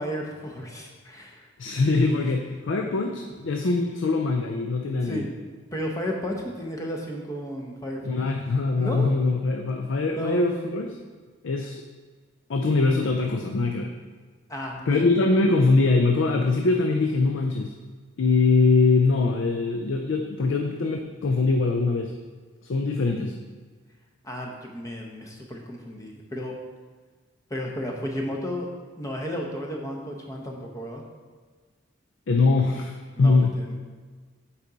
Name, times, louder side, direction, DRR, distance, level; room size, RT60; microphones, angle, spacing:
voice 1, 0.0-1.5 1.8-2.2 5.0-5.3 5.7-8.3 8.8-9.1 10.0-10.7 14.5-15.1 24.2-26.6 27.5-28.7 29.0-31.0 33.2-33.8, equal, 15° left, 0 dB, 0.7 m, -33 dB
voice 2, 1.6-5.3 8.0-10.9 11.4-11.8 12.5-13.9 14.9-17.7 18.2-22.1 22.6-23.4 32.3-33.5, left 3 dB, 65° left, 4 dB, 0.5 m, -22 dB
8.2 x 4.8 x 3.9 m, 1.5 s
head